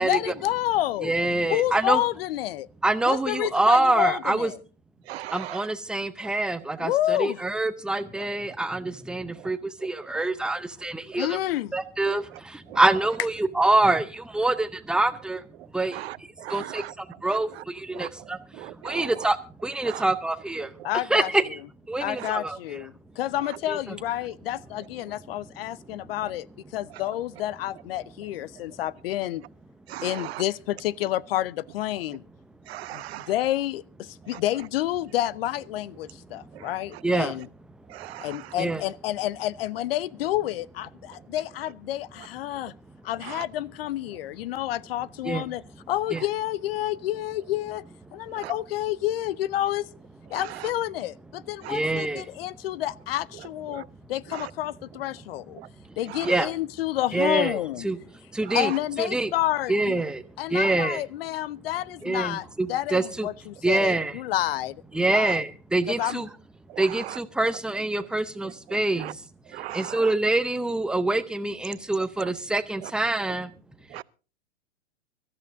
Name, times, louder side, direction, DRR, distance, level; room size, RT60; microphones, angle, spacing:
voice 1, 0.0-1.1 1.5-2.7 3.0-4.6 6.8-7.4 11.2-11.7 20.8-21.3 22.0-26.5 26.7-29.4 30.0-32.2 32.9-37.5 38.2-42.7 43.0-45.6 45.9-47.8 48.1-49.9 50.3-55.6 56.0-57.9 58.5-60.0 60.4-65.4 66.0-66.2, left 14 dB, 55° left, 0.6 m, -29 dB
voice 2, 1.0-2.0 2.8-4.5 5.3-11.4 11.7-15.4 15.7-16.0 16.5-18.4 18.8-19.4 19.6-20.7 21.1-21.6 21.9-22.8 23.7-23.8 37.0-37.3 38.6-38.8 45.2-45.5 46.1-46.2 51.7-52.2 56.2-56.5 57.1-57.6 57.8-58.0 58.3-58.7 59.0-59.3 59.7-60.2 60.5-61.0 62.0-63.3 63.6-64.2 64.9-66.3 66.8-69.1 69.7-73.5, right 2 dB, ahead, 0.6 m, -25 dB
voice 3, 5.1-5.6 15.9-16.9 17.9-18.1 18.6-19.0 19.9-20.0 22.2-22.3 29.9-30.4 32.7-33.3 36.6-36.7 37.9-38.4 43.3-43.4 48.4-48.5 51.6-51.7 53.7-53.8 54.3-54.5 55.6-55.7 66.7-66.8 69.0-69.1 69.5-70.0 73.9-74.0, right 15 dB, 60° right, 0.7 m, -37 dB
24.5 x 13.5 x 2.6 m
hypercardioid pair, 130°, 36 cm